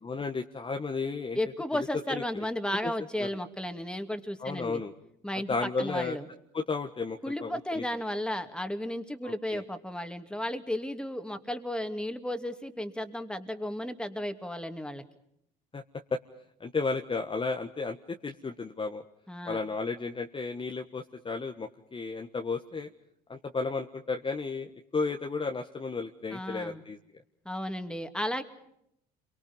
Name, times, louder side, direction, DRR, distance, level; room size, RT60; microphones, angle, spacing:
voice 1, 0.0-1.4 2.1-2.2 2.8-2.9 3.2-3.3 4.4-4.9 5.5-6.2 6.5-7.8 9.2-9.6 15.7-15.8 16.1-16.2 16.6-19.0 19.4-22.9 23.3-27.0, left 4 dB, 25° left, 4 dB, 1.5 m, -33 dB
voice 2, 1.3-4.8 5.2-6.3 7.2-15.0 19.3-19.6 26.3-26.8 27.4-28.4, left 1 dB, 5° left, 7 dB, 2.6 m, -34 dB
29.5 x 23.5 x 5.5 m, 0.76 s
hypercardioid pair, 70°, 21 cm